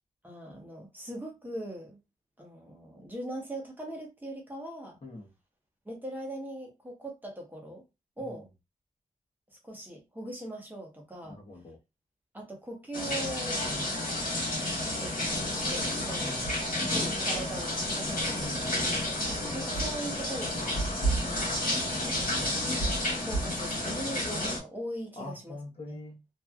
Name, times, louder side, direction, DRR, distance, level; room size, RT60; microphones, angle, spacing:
voice 1, 0.2-2.0 2.4-5.0 5.8-7.8 8.2-8.5 9.6-11.4 12.3-14.1 14.8-15.2 15.5-16.4 16.9-18.9 19.5-20.6 21.8-22.6 23.2-25.6 25.9-26.0, right 1 dB, 15° right, 0.9 m, -40 dB
voice 2, 5.0-5.3 8.2-8.4 11.2-11.8 13.6-13.9 16.1-16.7 18.4-19.5 25.2-26.2, left 2 dB, 45° left, 1.1 m, -44 dB
sound 1, 12.9-24.6, left 1 dB, 80° left, 1.4 m, -30 dB
3.0 x 2.6 x 2.3 m
wide cardioid pair, 150°, 14 cm